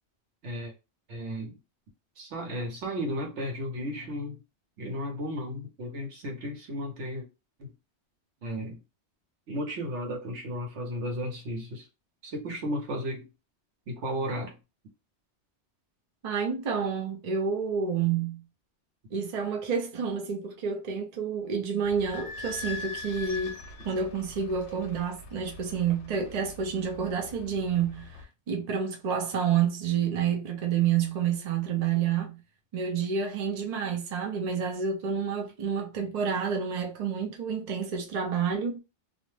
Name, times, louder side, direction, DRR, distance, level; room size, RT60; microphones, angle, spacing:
voice 1, 1.1-1.6 2.2-4.4 4.8-7.3 7.6-7.7 8.4-8.8 9.5-11.9 12.2-13.3 13.9-14.6, equal, 80° right, 1.1 m, -34 dB
voice 2, 16.2-18.4 19.1-32.4 32.7-38.8, right 7 dB, 45° right, 0.6 m, -29 dB
Idling / Squeak, 21.8-28.2, left 3 dB, 75° left, 0.9 m, -42 dB
2.5 x 2.1 x 3.1 m
omnidirectional pair, 1.2 m